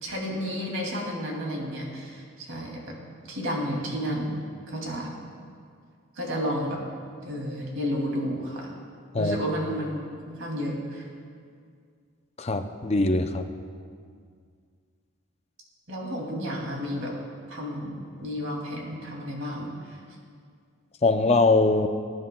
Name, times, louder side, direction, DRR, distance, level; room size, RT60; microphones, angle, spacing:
voice 1, 0.0-2.9 3.3-4.4 4.7-5.1 6.2-6.8 7.2-8.7 9.2-11.1 15.9-17.1 17.5-20.0, equal, 70° right, -1 dB, 2.5 m, -31 dB
voice 2, 12.4-13.4 21.0-21.9, left 3 dB, 30° left, 7 dB, 0.5 m, -22 dB
21.0 x 9.6 x 2.2 m, 2.1 s
head